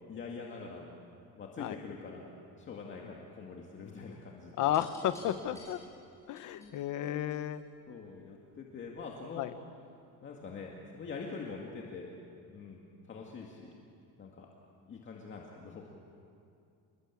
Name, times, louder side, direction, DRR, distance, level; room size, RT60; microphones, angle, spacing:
voice 1, 0.1-1.0 1.3-2.3 2.6-4.7 5.2-5.6 6.4-6.8 7.9-9.5 10.2-12.1 12.5-13.7 14.2-14.5 14.9-15.9, left 4 dB, 30° left, -1 dB, 2.1 m, -45 dB
voice 2, 4.6-5.8 6.3-7.6 9.4-9.5, left 11 dB, 55° left, 11 dB, 1.2 m, -32 dB
sound 1, 4.6-7.8 8.8-9.2, left 2 dB, 10° left, 6.6 m, -55 dB
29.0 x 21.5 x 8.5 m, 2.5 s
cardioid pair, 180°, 37 cm